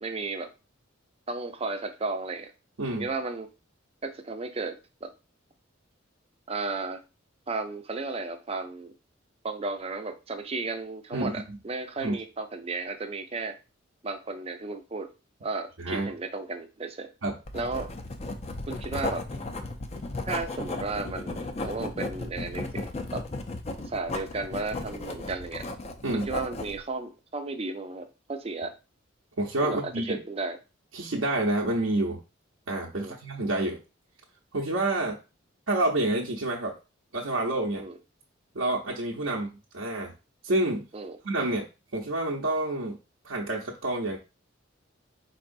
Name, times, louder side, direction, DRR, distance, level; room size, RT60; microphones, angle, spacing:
voice 1, 0.0-0.5 1.3-2.5 2.9-3.5 4.0-5.1 6.5-7.0 7.5-8.9 9.4-13.6 14.0-15.1 15.4-17.1 17.5-17.9 18.7-19.3 20.3-23.2 23.9-25.6 26.1-28.7 29.6-30.6 32.9-33.2 37.8-37.9 40.9-41.2, right 3 dB, 30° right, 7 dB, 0.5 m, -34 dB
voice 2, 15.8-16.1 17.2-17.3 26.0-26.3 29.4-30.2 30.9-32.2 32.7-33.8 34.5-35.2 35.7-36.7 37.1-37.9 38.5-40.1 40.4-40.9 41.2-41.6 41.9-43.0 43.2-44.2, right 2 dB, 75° right, -2 dB, 0.7 m, -28 dB
Writing, 17.5-26.8, left 2 dB, 30° left, 0.5 m, -35 dB
4.4 x 4.1 x 2.6 m, 0.30 s
head